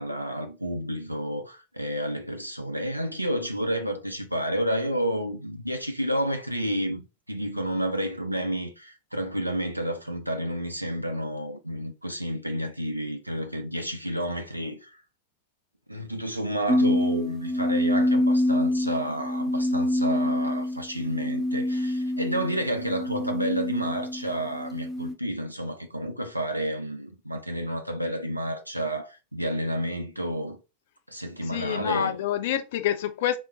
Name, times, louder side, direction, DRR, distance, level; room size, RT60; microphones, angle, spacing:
voice 1, 0.0-7.0 7.3-15.0 15.9-30.6 31.1-32.2, equal, 85° right, 0.4 m, -30 dB
sound 1, 16.7-25.1, left 1 dB, 15° right, 0.5 m, -26 dB
voice 2, 31.5-33.4, left 11 dB, 55° left, 0.5 m, -27 dB
3.6 x 2.1 x 3.8 m
figure-of-eight pair, 90°, 0 cm